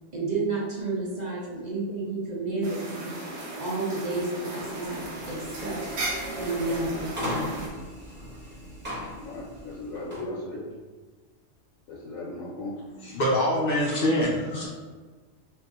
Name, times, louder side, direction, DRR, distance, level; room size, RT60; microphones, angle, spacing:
voice 1, 0.1-3.1 3.6-5.8 6.4-7.7, right 3 dB, 45° right, -6 dB, 0.6 m, -31 dB
sound 1, 2.6-7.7, right 2 dB, 70° right, 1.1 m, -36 dB
sound 2, 4.4-10.3, equal, 10° right, 1.2 m, -38 dB
voice 2, 9.2-10.8 11.9-12.8, left 2 dB, 80° left, -5 dB, 1.1 m, -37 dB
voice 3, 12.9-14.7, left 1 dB, 55° left, -4 dB, 0.7 m, -25 dB
2.6 x 2.4 x 3.5 m, 1.4 s
omnidirectional pair, 1.3 m